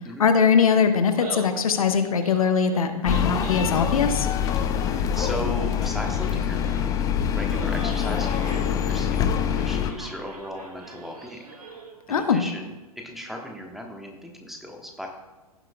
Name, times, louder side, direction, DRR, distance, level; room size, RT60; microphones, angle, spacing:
voice 1, 0.2-4.3 12.1-12.5, left 6 dB, 60° left, 8 dB, 0.9 m, -21 dB
Laughter, 1.0-12.0, right 2 dB, 75° right, 2.0 m, -42 dB
sound 1, 3.0-9.9, left 8 dB, 20° left, 0.5 m, -25 dB
voice 2, 5.1-7.0 7.3-9.2 9.5-11.4 12.1-15.1, equal, ahead, 1 dB, 1.1 m, -36 dB
16.0 x 7.5 x 2.2 m, 1.2 s
figure-of-eight pair, 110°, 20 cm